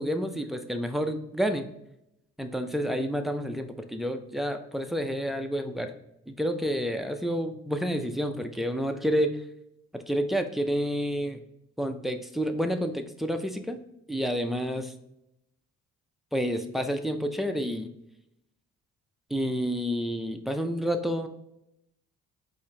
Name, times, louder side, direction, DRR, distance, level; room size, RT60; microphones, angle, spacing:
voice 1, 0.0-1.7 2.4-5.9 6.3-9.4 9.9-11.4 11.8-13.8 14.1-14.9 16.3-17.9 19.3-21.3, equal, ahead, 6 dB, 0.5 m, -29 dB
4.8 x 2.7 x 3.3 m, 0.81 s
cardioid pair, 90°, 30 cm